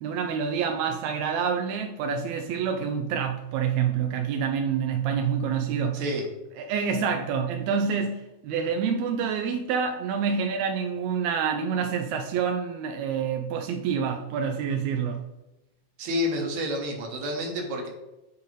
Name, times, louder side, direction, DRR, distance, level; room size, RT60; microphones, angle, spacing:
voice 1, 0.0-6.0 6.6-15.2, right 6 dB, 85° right, 4 dB, 1.6 m, -27 dB
voice 2, 5.9-6.3 16.0-17.9, left 1 dB, 65° right, 1 dB, 2.2 m, -29 dB
8.3 x 4.0 x 3.2 m, 0.98 s
omnidirectional pair, 3.7 m